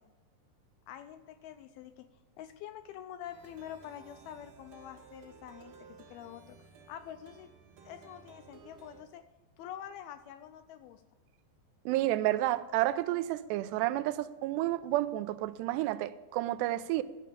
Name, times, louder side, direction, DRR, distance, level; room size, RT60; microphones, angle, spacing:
voice 1, 0.9-2.1 2.4-5.8 6.1-7.5 7.8-9.2 9.6-11.0, left 10 dB, 85° left, 2.3 m, -46 dB
Plucked string instrument, 3.2-9.0, right 5 dB, 60° right, 2.5 m, -56 dB
voice 2, 11.9-17.0, right 15 dB, 85° right, 2.7 m, -30 dB
15.0 x 5.7 x 8.4 m
omnidirectional pair, 4.8 m